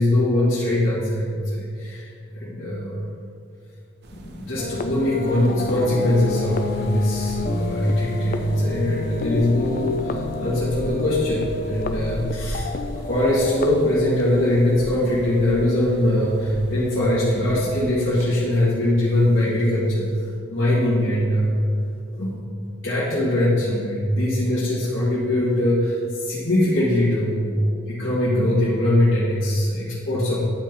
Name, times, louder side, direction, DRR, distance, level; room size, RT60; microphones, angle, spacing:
voice 1, 0.0-3.0 4.1-12.7 13.1-20.1 20.5-21.7 22.1-22.4 22.8-30.4, left 1 dB, 85° left, -10 dB, 1.8 m, -21 dB
sound 1, 4.0-18.3, right 1 dB, 55° right, 0.7 m, -38 dB
sound 2, 4.6-14.6, left 4 dB, 45° left, 0.3 m, -31 dB
10.5 x 4.4 x 3.9 m, 2.4 s
head